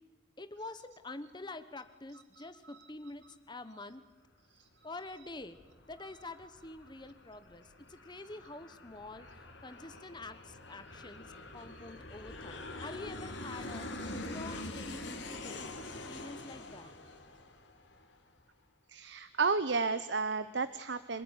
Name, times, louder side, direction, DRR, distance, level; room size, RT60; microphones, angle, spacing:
voice 1, 0.4-4.0 4.8-5.6 5.9-9.3 9.6-13.9 14.3-15.8 16.1-16.9, left 2 dB, 25° left, 12 dB, 1.1 m, -47 dB
voice 2, 2.3-2.9 4.5-4.9 11.9-12.0 18.9-21.2, right 4 dB, 65° right, 12 dB, 0.9 m, -33 dB
Aircraft, 5.1-18.3, left 2 dB, 70° left, 3.1 m, -45 dB
26.5 x 20.0 x 9.8 m, 1.3 s
head